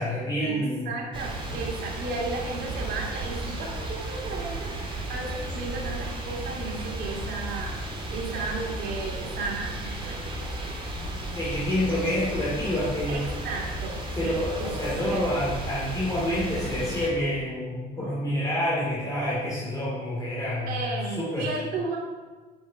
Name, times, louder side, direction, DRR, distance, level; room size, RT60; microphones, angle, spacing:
voice 1, 0.0-0.9 11.3-13.3 14.2-21.5, left 1 dB, 20° left, -7 dB, 2.6 m, -28 dB
voice 2, 0.9-7.8 8.1-10.2 13.1-15.5 20.7-22.0, right 3 dB, 70° right, -1 dB, 2.6 m, -34 dB
sound 1, 1.1-17.1, right 1 dB, 30° right, 2.2 m, -34 dB
7.6 x 7.1 x 5.3 m, 1.3 s
cardioid pair, 110°, 17 cm